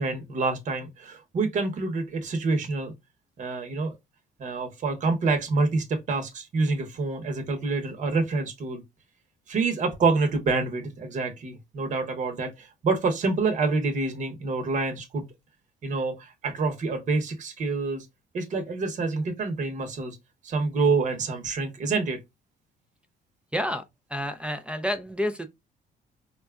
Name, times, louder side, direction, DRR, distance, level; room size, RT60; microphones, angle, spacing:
voice 1, 0.0-2.9 3.4-4.0 4.4-8.8 9.5-15.3 15.8-18.1 18.3-20.2 20.4-22.2, right 3 dB, 45° right, 0.9 m, -27 dB
voice 2, 23.5-23.8 24.1-25.5, equal, 5° right, 0.4 m, -29 dB
4.0 x 2.3 x 2.3 m
cardioid pair, 110°, 17 cm